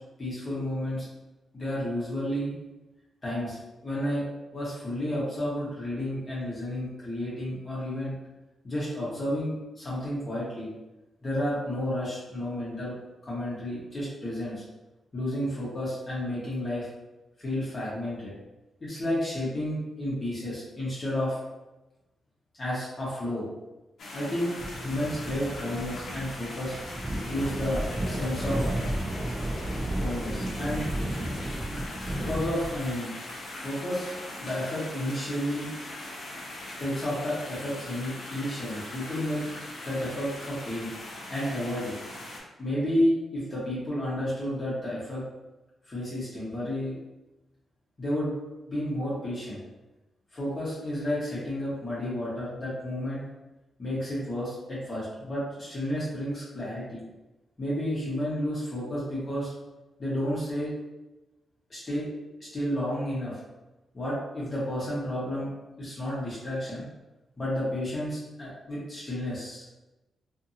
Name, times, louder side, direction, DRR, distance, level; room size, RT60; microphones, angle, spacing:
voice 1, 0.2-1.1 1.5-2.5 3.2-3.6 3.8-4.2 4.5-8.1 8.6-10.7 11.2-13.0 13.2-14.6 15.1-16.9 17.4-18.3 18.8-21.4 22.6-23.5 24.1-26.8 27.2-28.7 29.9-30.9 32.1-33.1 33.6-34.1 34.4-35.7 36.8-39.4 39.8-40.9 41.3-41.9 42.6-45.2 45.9-46.9 48.0-48.3 48.7-49.6 50.3-53.2 53.8-57.0 57.6-59.5 60.0-60.7 61.7-62.1 62.4-63.4 63.9-65.5 65.8-66.9 67.4-69.7, left 1 dB, 30° left, -8 dB, 0.9 m, -31 dB
sound 1, 24.0-42.4, left 1 dB, 65° left, 0.8 m, -40 dB
sound 2, 24.6-32.9, right 1 dB, 25° right, 0.3 m, -33 dB
2.5 x 2.5 x 2.7 m, 1.0 s
wide cardioid pair, 125°, 0 cm